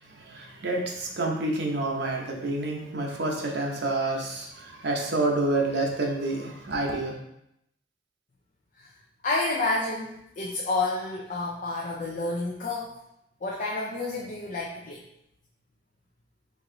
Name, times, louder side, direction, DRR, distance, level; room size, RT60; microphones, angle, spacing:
voice 1, 0.1-7.2, right 2 dB, 65° right, 0 dB, 0.8 m, -28 dB
voice 2, 9.2-12.9 13.4-15.0, left 2 dB, 45° left, -3 dB, 0.5 m, -29 dB
4.6 x 2.7 x 3.8 m, 0.80 s
head